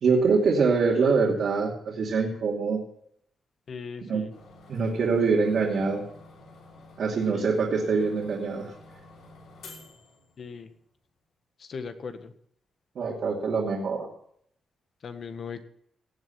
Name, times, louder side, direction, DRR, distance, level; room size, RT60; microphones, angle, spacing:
voice 1, 0.0-2.8 4.1-4.3 4.7-6.0 7.0-8.7 12.9-14.1, right 4 dB, 65° right, -4 dB, 2.7 m, -24 dB
voice 2, 3.7-4.3 7.3-7.5 10.4-10.7 11.6-12.3 15.0-15.6, left 5 dB, 50° left, 8 dB, 1.5 m, -38 dB
sound 1, 4.3-10.8, left 2 dB, 85° left, 5.5 m, -50 dB
17.5 x 7.9 x 5.8 m, 0.66 s
cardioid pair, 115°, 0 cm